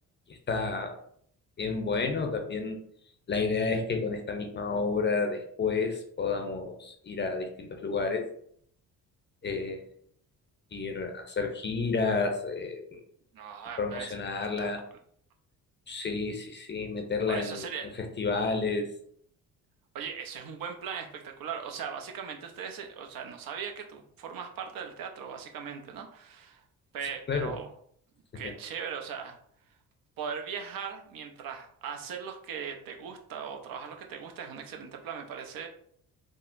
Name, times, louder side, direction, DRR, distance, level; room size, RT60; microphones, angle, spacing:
voice 1, 0.3-0.9 1.6-2.8 3.3-8.3 9.4-9.8 10.7-13.0 13.8-14.8 15.9-17.7 18.2-18.9 27.3-27.5, left 4 dB, 30° left, 4 dB, 0.5 m, -30 dB
voice 2, 13.3-14.1 14.6-14.7 17.3-17.9 19.9-26.6 26.9-27.7 28.3-29.4 30.2-35.7, right 7 dB, 65° right, 4 dB, 0.6 m, -39 dB
3.6 x 2.0 x 2.5 m, 0.65 s
supercardioid pair, 65°, 37 cm